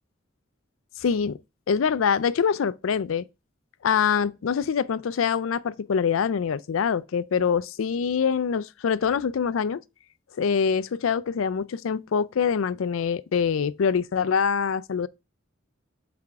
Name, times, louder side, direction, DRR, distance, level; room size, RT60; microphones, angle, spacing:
voice 1, 1.0-1.4 1.7-3.2 3.8-9.8 10.4-15.1, left 6 dB, 90° left, 0.4 m, -24 dB
5.8 x 4.8 x 3.5 m
head